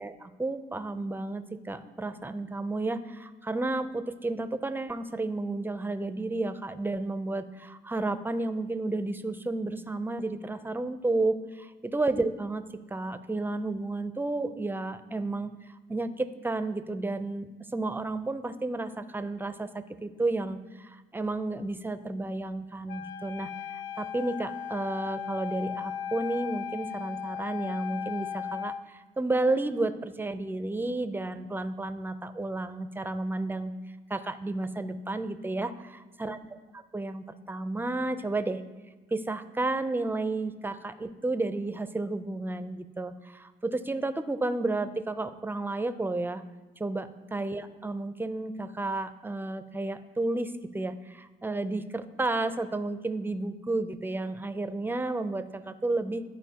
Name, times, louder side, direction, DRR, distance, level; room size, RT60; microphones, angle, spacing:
voice 1, 0.0-12.6 12.9-15.5 15.9-23.5 24.0-33.7 34.1-36.4 36.9-38.6 39.1-46.4 46.8-56.2, right 2 dB, 10° right, 11 dB, 0.4 m, -32 dB
Wind instrument woodwind instrument, 22.9-28.8, left 9 dB, 70° left, 0.4 m, -37 dB
12.0 x 4.4 x 2.8 m, 1.2 s
cardioid pair, 90°, 20 cm